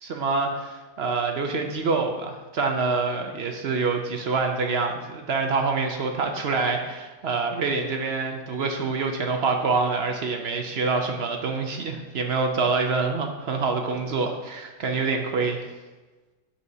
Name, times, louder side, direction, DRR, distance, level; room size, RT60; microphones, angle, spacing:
voice 1, 0.0-15.6, right 4 dB, 60° right, 4 dB, 0.6 m, -26 dB
9.5 x 6.9 x 2.7 m, 1.2 s
omnidirectional pair, 1.8 m